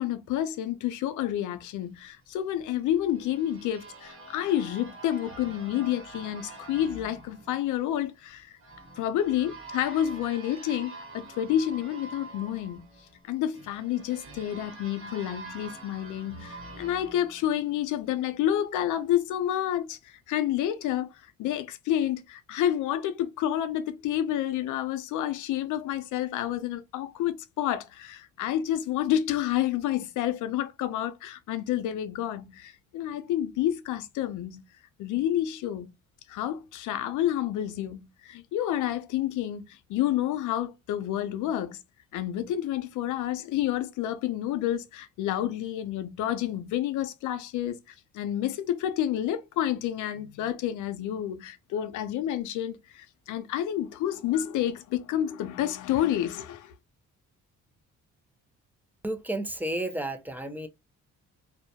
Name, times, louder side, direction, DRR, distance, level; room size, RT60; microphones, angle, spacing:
voice 1, 0.0-8.5 9.0-12.8 13.3-21.1 21.4-34.6 35.0-35.9 36.3-41.8 42.1-47.8 48.1-56.7, left 11 dB, 80° left, 0.5 m, -29 dB
sound 1, 2.5-18.2, right 2 dB, 45° right, 1.1 m, -46 dB
voice 2, 59.0-60.7, right 1 dB, 5° right, 0.4 m, -32 dB
2.2 x 2.1 x 2.7 m
cardioid pair, 90°, 30 cm